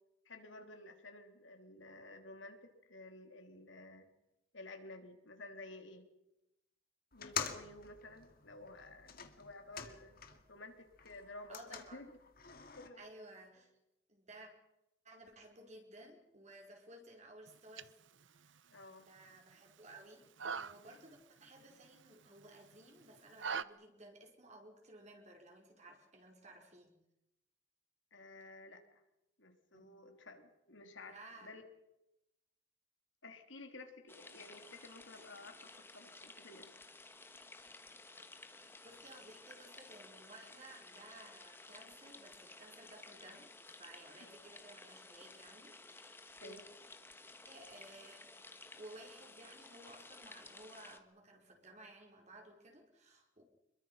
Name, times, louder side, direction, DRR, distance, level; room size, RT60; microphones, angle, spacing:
voice 1, 0.3-4.1 4.5-6.0 7.1-10.1 10.5-12.2 12.7-13.0 18.7-19.1 28.1-29.0 29.4-31.7 33.2-36.7 44.2-44.3 46.4-46.6, left 2 dB, 70° left, 5 dB, 3.5 m, -53 dB
sound 1, 7.1-10.6 10.9-12.9, left 7 dB, 45° left, 2.2 m, -46 dB
voice 2, 11.5-12.0 13.0-13.7 14.1-14.5 15.0-17.9 18.2-18.6 19.0-20.2 20.6-26.9 29.7-29.9 31.1-31.6 38.8-46.6 47.5-48.5 48.8-53.4, right 1 dB, 35° right, 2 dB, 5.2 m, -56 dB
sound 2, 17.5-23.6, right 6 dB, 65° right, 0.9 m, -46 dB
sound 3, 34.1-51.0, left 3 dB, 10° left, 1.5 m, -55 dB
26.5 x 22.5 x 5.8 m, 0.88 s
head